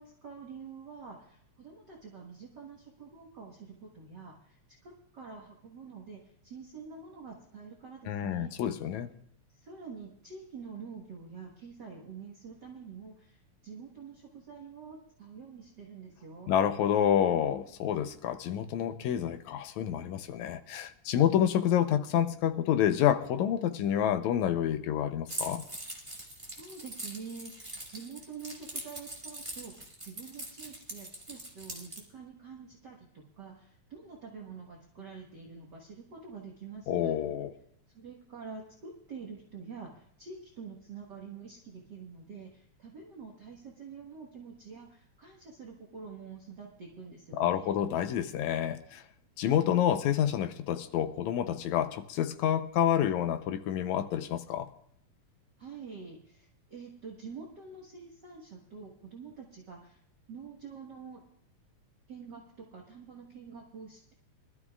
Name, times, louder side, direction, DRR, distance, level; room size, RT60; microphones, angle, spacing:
voice 1, 0.0-8.5 9.5-16.5 26.6-29.7 30.0-37.2 37.9-47.7 55.6-60.0 60.3-61.2 62.1-64.1, right 5 dB, 45° right, 1.7 m, -47 dB
voice 2, 8.1-9.1 16.5-25.6 36.9-37.5 47.3-49.0 49.4-54.7, left 10 dB, 80° left, 2.0 m, -28 dB
Keys jangling, 25.3-32.0, right 1 dB, 10° right, 1.7 m, -42 dB
23.5 x 13.0 x 2.4 m
omnidirectional pair, 3.5 m